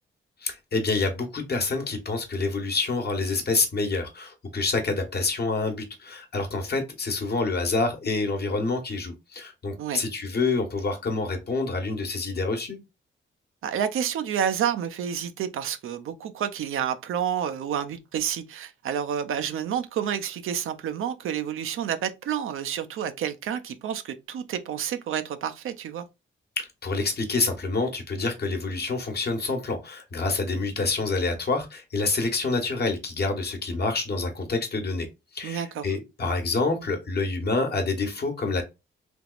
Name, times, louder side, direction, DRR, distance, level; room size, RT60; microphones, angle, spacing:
voice 1, 0.4-12.8 26.6-35.1 35.3-38.6, left 3 dB, 50° left, 1.1 m, -27 dB
voice 2, 13.6-26.1 35.4-35.9, right 9 dB, 90° right, 0.5 m, -29 dB
3.5 x 2.9 x 2.4 m
cardioid pair, 95°, 21 cm